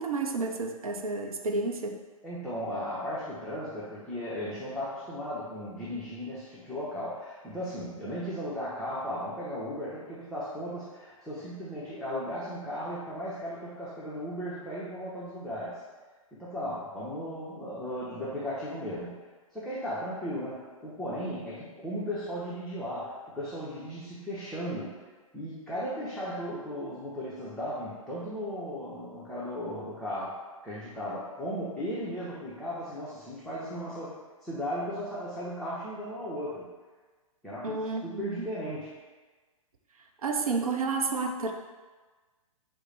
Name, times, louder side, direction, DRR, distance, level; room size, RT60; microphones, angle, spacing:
voice 1, 0.0-2.0 37.6-38.4 40.2-41.5, right 3 dB, 80° right, 3 dB, 0.6 m, -30 dB
voice 2, 2.2-15.8 16.3-19.2 19.5-25.0 25.3-36.7 37.4-39.0, equal, ahead, -10 dB, 0.7 m, -36 dB
6.2 x 2.1 x 3.2 m, 1.3 s
hypercardioid pair, 120°, 18 cm